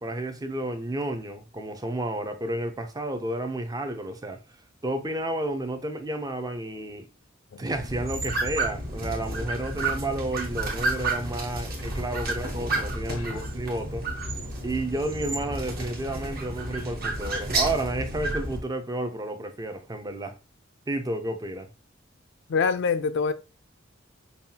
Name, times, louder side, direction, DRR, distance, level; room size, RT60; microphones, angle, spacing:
voice 1, 0.0-4.4 4.8-7.1 7.6-14.0 14.6-20.4 20.9-21.7, right 1 dB, 20° right, 0.4 m, -31 dB
sound 1, 7.7-18.6, right 2 dB, 50° right, 1.1 m, -31 dB
voice 2, 13.1-13.4 22.5-23.3, left 5 dB, 65° left, 0.4 m, -25 dB
5.4 x 2.3 x 2.7 m
head